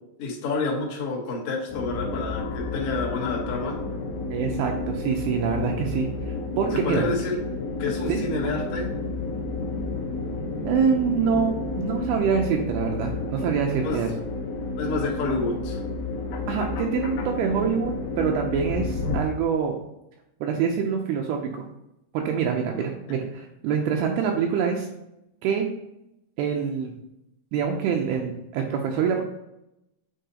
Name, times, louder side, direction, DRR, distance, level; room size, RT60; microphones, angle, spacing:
voice 1, 0.2-3.8 6.7-7.4 7.8-8.9 13.8-14.1 14.8-15.8, left 3 dB, 70° left, -2 dB, 1.4 m, -29 dB
sound 1, 1.7-19.2, left 3 dB, 85° left, 1.8 m, -31 dB
voice 2, 4.3-7.0 8.1-8.2 10.6-14.1 16.5-19.8 20.4-21.6 22.1-24.9 25.4-25.7 26.4-26.9 27.5-29.2, right 7 dB, 80° right, 2 dB, 2.3 m, -25 dB
9.1 x 4.1 x 2.8 m, 0.87 s
omnidirectional pair, 4.8 m